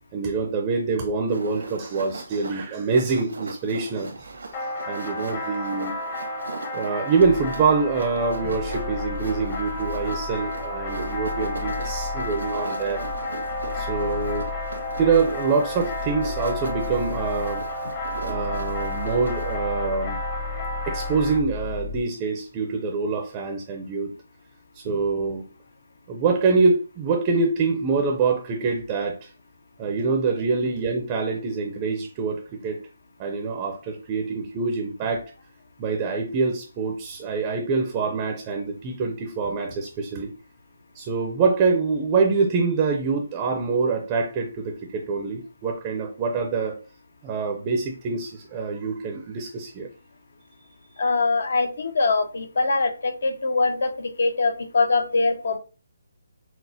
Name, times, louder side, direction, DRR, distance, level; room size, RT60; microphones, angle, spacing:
voice 1, 0.1-4.1 4.9-5.9 6.7-13.1 13.7-14.5 15.0-17.6 18.2-20.2 20.9-24.1 24.7-25.4 26.1-29.3 29.8-32.8 33.2-35.3 35.8-40.3 40.9-46.8 47.2-49.9, right 4 dB, 20° right, 2 dB, 0.5 m, -25 dB
sound 1, 1.3-19.6, right 3 dB, 85° right, 1.2 m, -40 dB
sound 2, 4.5-21.4, left 1 dB, 25° left, 0.8 m, -32 dB
sound 3, 7.2-22.0, left 4 dB, 60° right, 0.6 m, -36 dB
voice 2, 51.0-55.6, left 3 dB, 60° left, 8 dB, 0.7 m, -23 dB
6.1 x 2.1 x 2.7 m, 0.33 s
hypercardioid pair, 165°, 0 cm